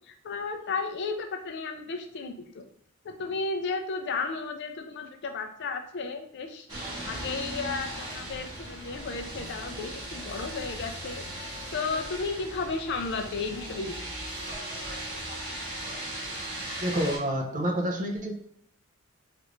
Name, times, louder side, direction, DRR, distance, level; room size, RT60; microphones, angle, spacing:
voice 1, 0.1-2.7 3.0-6.7 7.1-14.0, left 4 dB, 55° left, 6 dB, 0.4 m, -34 dB
sound 1, 6.7-17.2, right 1 dB, 20° right, 1.1 m, -38 dB
voice 2, 16.8-18.3, equal, 35° right, 2 dB, 0.5 m, -28 dB
3.2 x 2.5 x 2.9 m, 0.71 s
head